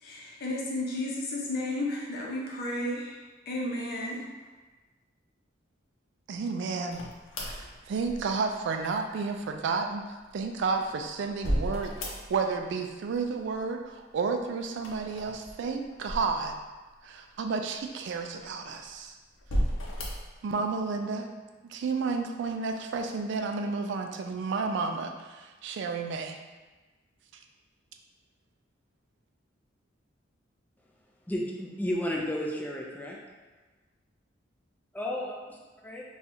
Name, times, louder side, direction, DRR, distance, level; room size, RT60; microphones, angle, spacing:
voice 1, 0.0-3.2 3.5-4.2, left 1 dB, 55° left, -4 dB, 0.7 m, -33 dB
voice 2, 6.3-7.0 7.4-10.0 10.3-16.5 17.0-19.1 20.4-21.3 21.7-26.4, right 4 dB, 65° right, 5 dB, 0.3 m, -31 dB
sound 1, 6.9-8.6 10.4-12.6 12.9-13.6 14.7-16.9 17.5-17.6 18.4-18.9 19.4-20.4, equal, 90° left, 0.6 m, -34 dB
voice 3, 31.3-33.2 34.9-35.6 35.8-36.0, left 1 dB, 10° left, -2 dB, 0.4 m, -32 dB
2.7 x 2.4 x 4.1 m, 1.2 s
head